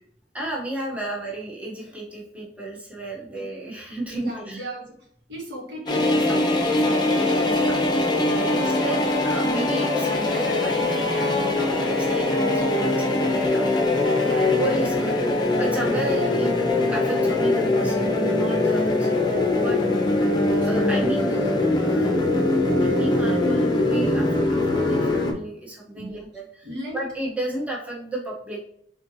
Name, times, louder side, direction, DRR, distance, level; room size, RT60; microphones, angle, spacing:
voice 1, 0.3-4.7 8.6-13.7 14.2-16.5 16.9-19.1 19.5-19.8 20.7-22.3 22.7-28.6, right 1 dB, 10° right, -3 dB, 0.8 m, -33 dB
voice 2, 4.1-4.8 5.3-9.0 20.7-21.3 23.3-23.6 26.0-26.3 26.6-27.0, right 1 dB, 80° right, -2 dB, 1.6 m, -36 dB
sound 1, 5.9-25.3, left 2 dB, 25° left, 0.7 m, -22 dB
4.3 x 3.7 x 2.6 m, 0.69 s
head